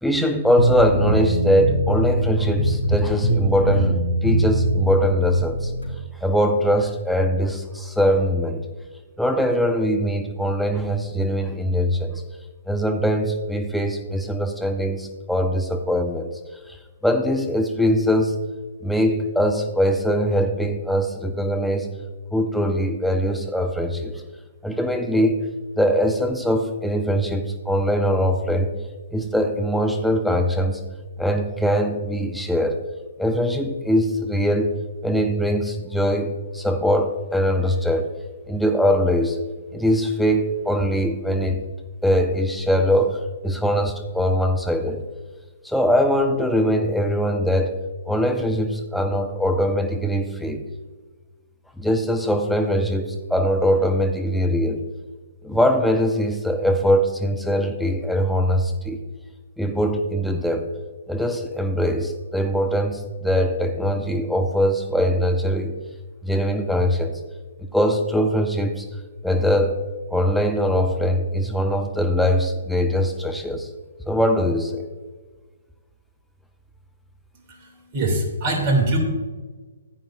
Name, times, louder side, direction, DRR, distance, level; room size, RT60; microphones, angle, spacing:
voice 1, 0.0-5.7 6.2-8.7 9.2-12.2 12.7-16.3 16.7-16.8 17.0-18.3 18.8-22.0 22.3-24.2 24.6-25.4 25.8-28.7 29.1-30.8 31.2-32.8 33.2-34.7 35.0-38.1 38.5-39.4 39.7-41.6 42.0-45.1 45.6-47.8 48.1-50.7 51.8-54.8 55.4-59.0 59.6-60.6 61.1-65.7 66.2-67.2 67.6-68.9 69.2-69.8 70.1-73.7 74.1-74.9, equal, ahead, 3 dB, 0.9 m, -22 dB
sound 1, 0.6-5.9, right 1 dB, 75° left, 2.9 m, -22 dB
voice 2, 77.3-79.0, right 2 dB, 40° right, 3 dB, 2.5 m, -23 dB
15.0 x 9.2 x 2.5 m, 1.4 s
figure-of-eight pair, 125°, 0 cm